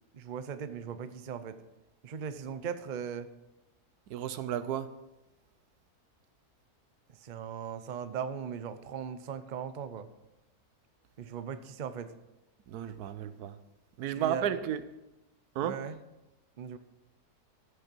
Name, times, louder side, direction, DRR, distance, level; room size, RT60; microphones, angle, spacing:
voice 1, 0.1-1.6 2.0-3.3 7.2-10.1 11.2-12.1 14.0-14.6 15.6-16.0 16.6-16.8, right 7 dB, 45° right, 0.6 m, -38 dB
voice 2, 4.1-4.9 12.7-13.6 14.0-14.8 15.6-15.8, right 10 dB, 85° right, 1.2 m, -33 dB
13.0 x 6.6 x 6.1 m
omnidirectional pair, 1.6 m